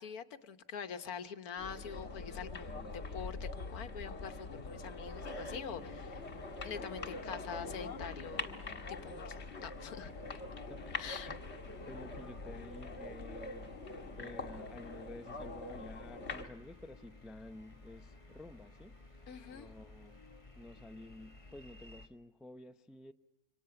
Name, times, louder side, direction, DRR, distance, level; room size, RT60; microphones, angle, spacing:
voice 1, 0.0-6.2 6.6-8.6 8.9-10.1 11.0-11.3 19.3-19.7, left 7 dB, 90° left, 1.5 m, -45 dB
sound 1, 1.6-16.4, left 3 dB, 50° left, 1.8 m, -44 dB
sound 2, 5.0-22.1, left 2 dB, 25° left, 1.6 m, -56 dB
voice 2, 10.7-11.4 11.9-13.8 14.2-19.0 19.5-20.2 20.6-23.1, left 1 dB, ahead, 0.3 m, -51 dB
27.0 x 25.0 x 5.8 m
omnidirectional pair, 1.5 m